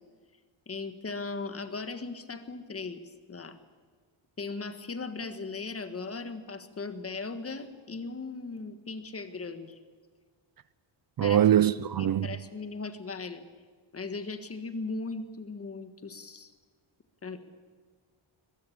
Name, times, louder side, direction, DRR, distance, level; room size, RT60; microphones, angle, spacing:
voice 1, 0.7-3.0 3.3-3.6 4.4-9.8 11.2-11.4 11.8-13.4 13.9-16.5 17.2-17.4, left 3 dB, 30° left, 1.6 m, -38 dB
voice 2, 11.2-12.3, right 11 dB, 50° right, 0.6 m, -22 dB
22.0 x 21.5 x 8.7 m
wide cardioid pair, 165°, 47 cm